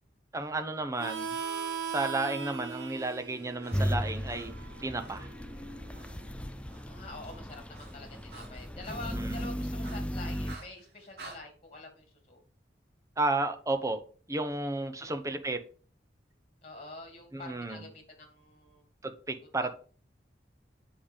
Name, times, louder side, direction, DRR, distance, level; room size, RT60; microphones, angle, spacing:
voice 1, 0.3-1.4 1.8-4.5 4.8-5.3 9.1-9.5 13.2-14.0 14.3-15.6 17.3-17.9 19.0-19.7, right 2 dB, 15° right, 0.9 m, -32 dB
Harmonica, 1.0-6.3, right 6 dB, 75° right, 1.1 m, -39 dB
Breathing, 2.3-5.3 5.9-6.2 6.5-11.4, right 3 dB, 60° right, 2.7 m, -52 dB
sound 1, 3.7-10.6, equal, 5° left, 0.4 m, -36 dB
voice 2, 6.9-12.4 15.0-15.1 16.6-18.8, left 2 dB, 35° left, 2.5 m, -46 dB
7.8 x 5.2 x 5.2 m
head